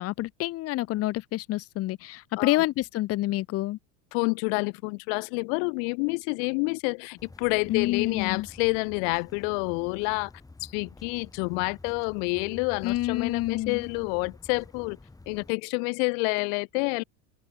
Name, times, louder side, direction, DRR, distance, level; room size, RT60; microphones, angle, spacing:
voice 1, 0.0-3.8 7.7-8.5 12.8-13.9, left 17 dB, 30° left, 0.9 m, -28 dB
voice 2, 4.1-10.3 10.6-15.0 15.3-17.0, left 40 dB or more, 60° left, 2.2 m, -28 dB
sound 1, 7.2-15.5, left 3 dB, 5° left, 5.6 m, -49 dB
supercardioid pair, 150°, 46 cm